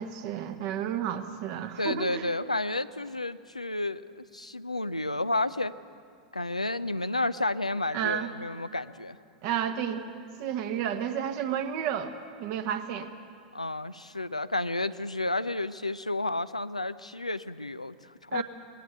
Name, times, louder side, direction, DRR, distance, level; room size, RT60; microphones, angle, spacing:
voice 1, 0.0-2.3 7.9-8.3 9.4-10.0 10.4-12.1 12.4-13.1 18.3-18.4, right 9 dB, 45° right, 7 dB, 1.4 m, -31 dB
voice 2, 1.8-5.7 6.3-9.2 13.5-18.4, left 2 dB, 90° left, 13 dB, 0.5 m, -31 dB
20.5 x 17.0 x 8.3 m, 2.2 s
figure-of-eight pair, 90°, 3 cm